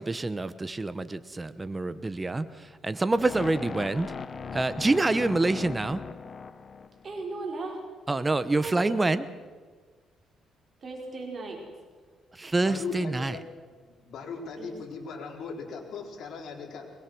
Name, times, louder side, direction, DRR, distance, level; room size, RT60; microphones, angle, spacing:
voice 1, 0.0-4.1 4.5-6.0 8.1-9.2 12.3-13.4, right 2 dB, 20° right, 1.0 m, -27 dB
sound 1, 3.1-7.2, left 5 dB, 40° left, 1.1 m, -39 dB
voice 2, 7.0-7.9 8.6-9.0 10.8-11.7 14.6-14.7, right 3 dB, 45° right, 5.4 m, -37 dB
voice 3, 12.6-13.4 13.8-16.9, left 5 dB, 65° left, 4.1 m, -38 dB
22.5 x 20.5 x 6.2 m
cardioid pair, 90°, 0 cm